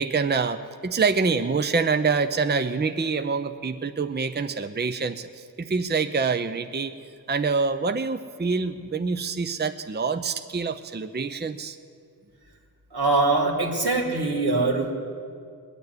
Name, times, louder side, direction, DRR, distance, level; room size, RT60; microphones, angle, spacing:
voice 1, 0.0-6.9 7.3-11.8, right 4 dB, 25° right, 9 dB, 0.6 m, -26 dB
voice 2, 12.9-14.9, right 3 dB, 80° right, 0 dB, 2.7 m, -23 dB
21.0 x 7.1 x 9.7 m, 2.3 s
wide cardioid pair, 45°, 38 cm